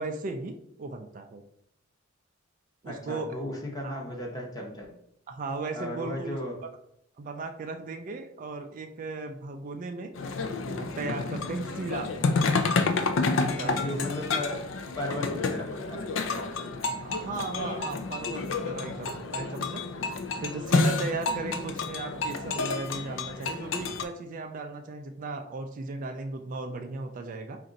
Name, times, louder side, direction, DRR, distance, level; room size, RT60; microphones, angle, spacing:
voice 1, 0.0-1.4 2.8-3.3 3.8-3.9 5.3-6.4 7.2-10.1 10.7-12.1 13.2-13.8 17.0-19.8 20.4-27.6, right 3 dB, 40° right, 6 dB, 0.3 m, -36 dB
voice 2, 2.8-4.9 5.7-6.6 13.5-14.7 15.0-16.7 21.4-21.6, left 1 dB, 20° left, 0 dB, 0.8 m, -35 dB
sound 1, 10.1-24.0, left 3 dB, 65° left, 0.4 m, -30 dB
4.2 x 2.5 x 3.8 m, 0.76 s
head